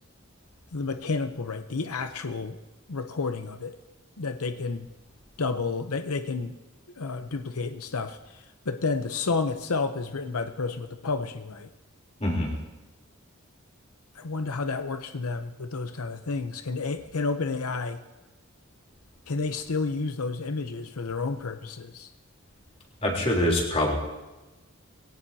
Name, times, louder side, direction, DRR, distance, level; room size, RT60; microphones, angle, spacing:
voice 1, 0.7-2.6 2.9-3.8 4.2-4.9 5.4-6.5 7.0-11.7 14.1-18.0 19.3-22.1, left 4 dB, 90° left, 8 dB, 0.8 m, -30 dB
voice 2, 12.2-12.5 23.0-24.0, left 1 dB, 30° left, -1 dB, 3.5 m, -24 dB
22.0 x 17.5 x 2.8 m, 1.1 s
head